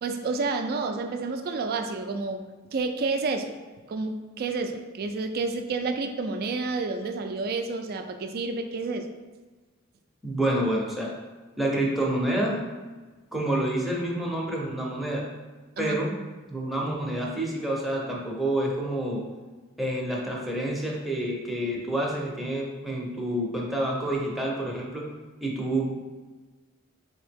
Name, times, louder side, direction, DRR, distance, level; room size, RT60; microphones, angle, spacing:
voice 1, 0.0-2.4 2.7-3.5 3.9-9.0 15.8-16.0, right 3 dB, 50° right, 6 dB, 0.3 m, -29 dB
voice 2, 10.2-11.1 11.6-12.6 13.3-15.2 15.8-16.1 16.5-19.2 19.8-25.0 25.4-25.9, right 1 dB, ahead, -4 dB, 0.6 m, -28 dB
3.5 x 2.8 x 3.4 m, 1.3 s
head